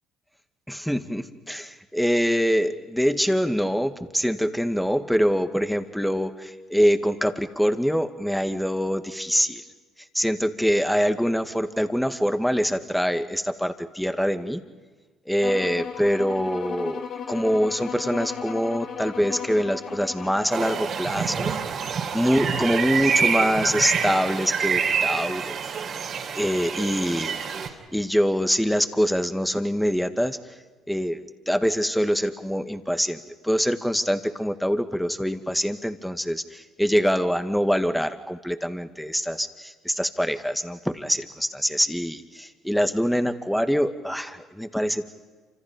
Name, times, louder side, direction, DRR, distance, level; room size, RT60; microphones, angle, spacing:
voice 1, 0.7-9.6 10.1-14.6 15.3-21.5 22.1-25.6 26.4-27.4 27.7-30.4 30.9-45.1, equal, ahead, 8 dB, 2.1 m, -24 dB
sound 1, 15.4-20.9, left 7 dB, 55° left, 2.5 m, -35 dB
sound 2, 20.5-27.7, right 6 dB, 55° right, 3.6 m, -27 dB
28.5 x 26.5 x 5.3 m, 1.4 s
hypercardioid pair, 60°, 0 cm